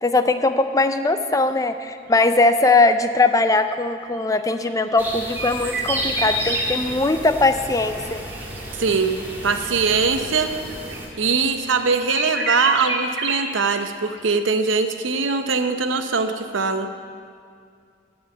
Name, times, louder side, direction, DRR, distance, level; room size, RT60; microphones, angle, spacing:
voice 1, 0.0-8.2, left 3 dB, 15° left, 9 dB, 0.4 m, -20 dB
sound 1, 4.2-6.6 7.3-13.8 14.1-14.2, right 3 dB, 65° right, 1.6 m, -30 dB
sound 2, 5.0-11.1, equal, 10° right, 1.7 m, -31 dB
voice 2, 8.8-10.5 11.2-16.9, right 4 dB, 85° right, 8 dB, 0.8 m, -22 dB
14.5 x 5.5 x 9.0 m, 2.3 s
head